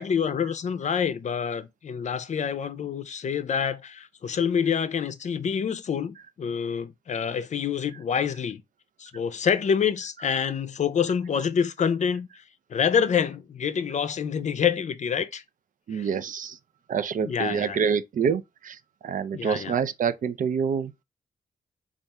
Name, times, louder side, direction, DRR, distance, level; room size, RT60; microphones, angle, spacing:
voice 1, 0.0-8.6 9.0-12.4 12.7-15.4 15.9-16.0 17.2-17.8 19.3-19.7, left 7 dB, 50° left, 0.5 m, -27 dB
voice 2, 15.9-16.6 16.9-20.9, right 6 dB, 60° right, 0.5 m, -27 dB
3.4 x 2.5 x 4.1 m
cardioid pair, 80°, 15 cm